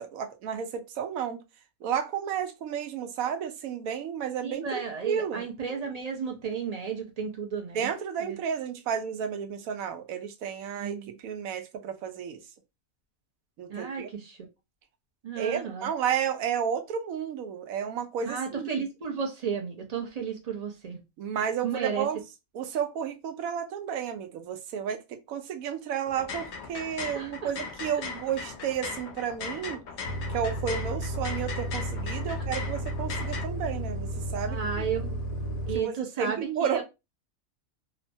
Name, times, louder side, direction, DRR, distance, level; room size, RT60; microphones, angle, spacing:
voice 1, 0.0-1.4 1.8-5.4 7.7-12.4 13.6-14.1 15.4-18.7 21.2-22.2 22.5-29.8 30.3-34.8 35.7-36.8, right 8 dB, 80° right, 1.0 m, -32 dB
voice 2, 4.4-7.9 8.2-8.4 10.8-11.1 13.7-14.4 15.2-15.9 18.2-21.0 21.6-22.1 27.1-27.5 34.5-35.2 35.7-36.8, right 6 dB, 55° right, 0.4 m, -33 dB
sound 1, 26.1-33.4, left 5 dB, 65° left, 0.7 m, -39 dB
sound 2, 30.0-35.8, right 1 dB, 85° left, 1.2 m, -33 dB
2.9 x 2.1 x 2.6 m
omnidirectional pair, 1.4 m